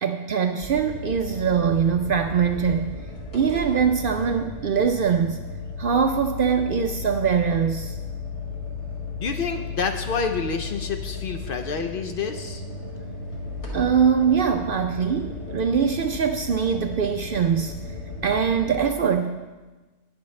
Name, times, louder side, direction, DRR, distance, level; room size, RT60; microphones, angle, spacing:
voice 1, 0.0-3.0 3.3-5.4 5.8-8.0 13.7-17.8 18.2-19.4, right 7 dB, 60° right, 5 dB, 0.6 m, -22 dB
sound 1, 0.6-18.8, left 4 dB, 30° left, 1.5 m, -35 dB
voice 2, 9.2-12.6, left 5 dB, 55° left, 6 dB, 0.7 m, -28 dB
18.0 x 6.2 x 3.2 m, 1.2 s
omnidirectional pair, 1.2 m